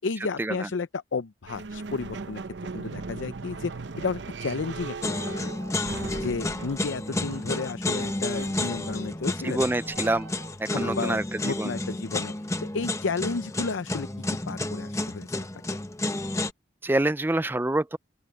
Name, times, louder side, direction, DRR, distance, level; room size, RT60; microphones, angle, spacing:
voice 1, 0.0-2.4 2.7-3.7 4.0-5.7 6.2-9.6 10.7-12.3 12.6-15.3 15.5-15.6, left 4 dB, 85° left, 0.6 m, -32 dB
sound 1, 1.5-10.6, right 4 dB, 70° right, 0.7 m, -39 dB
sound 2, 5.0-16.5, left 2 dB, 15° left, 0.9 m, -31 dB
voice 2, 9.4-10.3 10.6-11.7 16.8-18.0, right 1 dB, 10° right, 0.4 m, -26 dB
open air
head